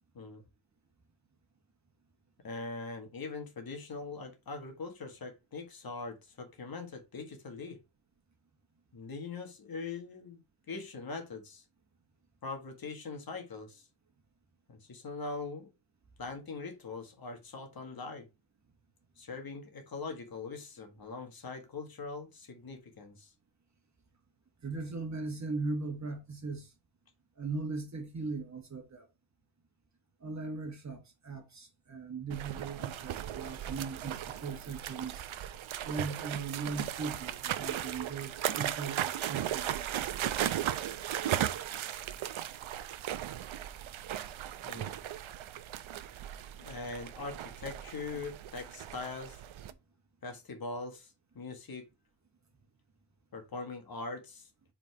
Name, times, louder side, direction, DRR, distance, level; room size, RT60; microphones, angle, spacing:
voice 1, 2.4-7.8 8.9-11.6 12.4-13.9 14.7-15.7 16.2-18.3 19.2-23.3 44.6-44.9 46.6-49.4 50.2-51.9 53.3-54.5, left 3 dB, 45° left, 1.7 m, -42 dB
voice 2, 24.6-26.7 27.4-29.1 30.2-35.2 35.8-40.6, right 4 dB, 35° right, 1.4 m, -39 dB
sound 1, 32.3-49.7, right 11 dB, 80° right, 0.7 m, -37 dB
5.2 x 4.3 x 4.5 m
wide cardioid pair, 170°, 48 cm